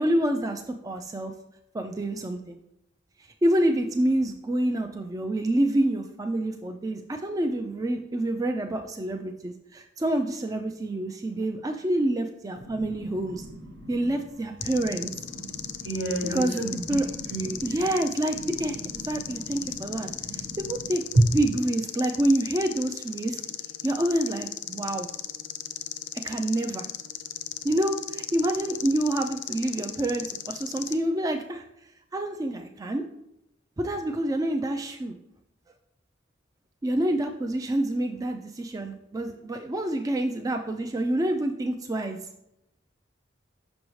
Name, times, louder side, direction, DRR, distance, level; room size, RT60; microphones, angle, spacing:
voice 1, 0.0-1.3 1.7-2.6 3.2-13.4 13.9-15.1 16.3-16.6 16.9-17.0 17.6-18.8 19.1-20.1 20.6-21.0 21.3-23.4 23.8-25.1 26.2-26.9 27.6-31.6 32.1-33.0 33.8-35.2 36.8-42.2, right 1 dB, 20° right, 4 dB, 0.3 m, -27 dB
voice 2, 12.6-14.2 14.6-17.9 18.3-21.4, right 1 dB, 70° right, 2 dB, 1.3 m, -31 dB
sound 1, 14.6-31.0, left 11 dB, 85° left, 0.5 m, -37 dB
6.2 x 6.1 x 3.1 m, 0.82 s
head